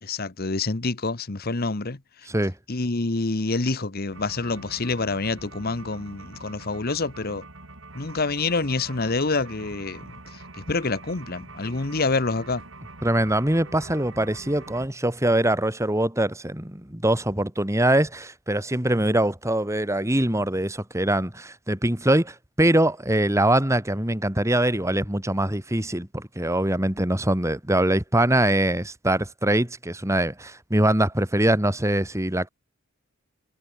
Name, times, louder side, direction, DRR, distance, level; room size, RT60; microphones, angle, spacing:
voice 1, 0.0-2.0 2.7-7.4 7.9-10.0 10.7-12.6, left 3 dB, 50° left, 1.2 m, -27 dB
sound 1, 4.1-14.9, right 2 dB, 65° right, 5.2 m, -44 dB
voice 2, 13.0-32.5, right 1 dB, 15° right, 2.4 m, -23 dB
head